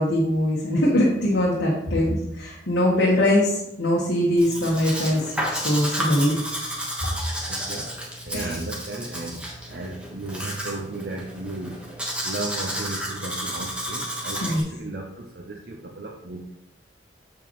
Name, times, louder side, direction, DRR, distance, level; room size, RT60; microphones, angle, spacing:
voice 1, 0.0-6.4 8.3-8.6 14.4-14.6, left 1 dB, 75° left, -3 dB, 1.3 m, -22 dB
Domestic sounds home sounds, 4.4-14.6, equal, 5° right, 1.2 m, -32 dB
voice 2, 7.5-7.9 8.2-11.8 12.2-16.4, right 2 dB, 60° right, 0 dB, 0.7 m, -35 dB
7.3 x 6.8 x 3.1 m, 0.82 s
head